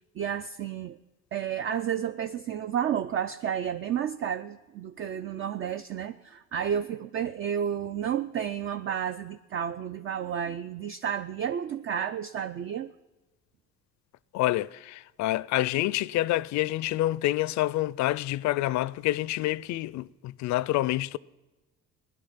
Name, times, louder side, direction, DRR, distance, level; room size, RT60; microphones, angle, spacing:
voice 1, 0.2-1.0 1.3-12.9, right 9 dB, 45° right, 0.4 m, -31 dB
voice 2, 14.3-21.2, left 16 dB, 65° left, 0.4 m, -27 dB
16.5 x 11.0 x 5.7 m
cardioid pair, 105°, 31 cm